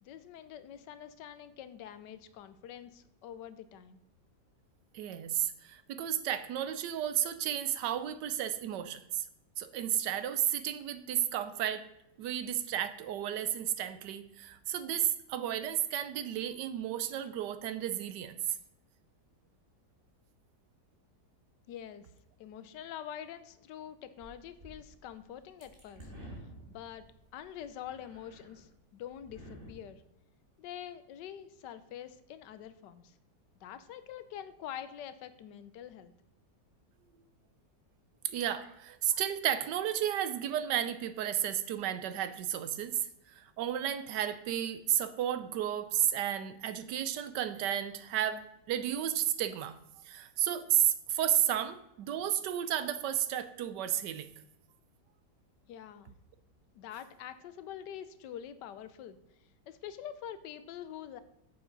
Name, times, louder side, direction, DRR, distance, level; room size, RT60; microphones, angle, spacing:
voice 1, 0.0-4.0 21.7-22.1 22.4-26.1 26.7-27.0 27.3-30.0 30.6-33.2 33.6-36.1 55.7-56.2 56.7-59.2 59.7-61.2, left 10 dB, 85° left, 13 dB, 1.3 m, -45 dB
voice 2, 4.9-9.3 9.6-11.9 12.2-18.6 38.2-49.8 50.0-54.3, right 11 dB, 85° right, 12 dB, 1.3 m, -32 dB
sound 1, 24.2-28.8 29.0-29.7, equal, 30° right, 2.2 m, -51 dB
9.0 x 6.9 x 3.9 m, 0.82 s
omnidirectional pair, 1.8 m